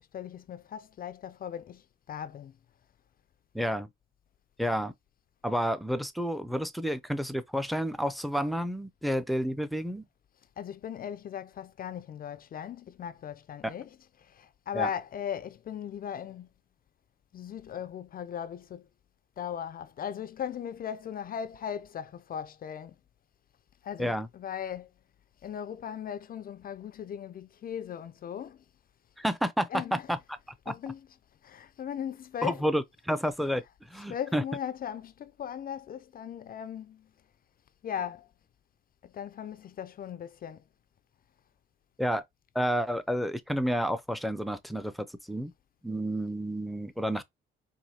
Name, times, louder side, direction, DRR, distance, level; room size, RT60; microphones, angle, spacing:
voice 1, 0.0-2.6 10.6-16.5 17.3-18.9 19.4-23.0 23.8-24.9 25.4-28.6 29.7-30.2 30.7-31.2 31.4-32.8 33.9-37.1 37.8-38.3 39.0-40.6, left 9 dB, 45° left, 0.4 m, -38 dB
voice 2, 3.5-3.9 4.6-4.9 5.4-10.0 13.6-13.7 14.7-14.9 24.0-24.3 29.2-30.2 30.7-30.8 32.4-33.6 33.9-34.4 42.0-42.2 42.5-45.5 45.8-47.2, equal, ahead, 0.6 m, -30 dB
4.6 x 2.7 x 2.7 m
cardioid pair, 90°, 20 cm